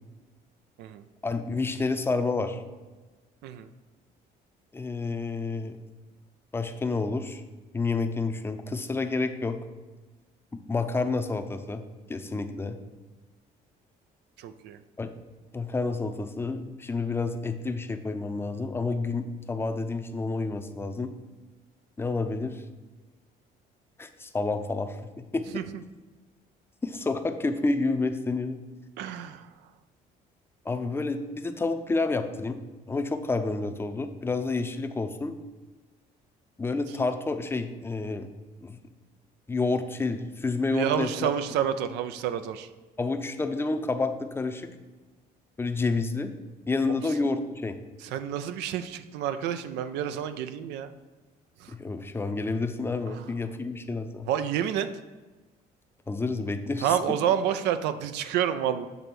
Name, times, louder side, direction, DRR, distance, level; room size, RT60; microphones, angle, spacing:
voice 1, 1.2-2.6 4.7-5.7 6.5-7.4 7.7-9.6 10.7-11.8 12.1-12.8 15.0-15.1 15.5-21.1 22.0-22.6 24.0-25.6 26.8-28.6 30.6-32.6 32.9-35.4 36.6-38.3 38.6-38.8 39.5-41.3 43.0-44.7 45.6-46.3 46.7-47.8 51.7-54.3 56.1-57.0, left 3 dB, 15° left, 7 dB, 0.5 m, -29 dB
voice 2, 14.4-14.8 25.5-25.6 29.0-29.5 40.7-42.7 48.0-50.9 51.6-51.7 54.3-54.9 56.8-58.9, right 9 dB, 90° right, 10 dB, 0.4 m, -29 dB
7.0 x 3.3 x 6.0 m, 1.3 s
cardioid pair, 110°, 17 cm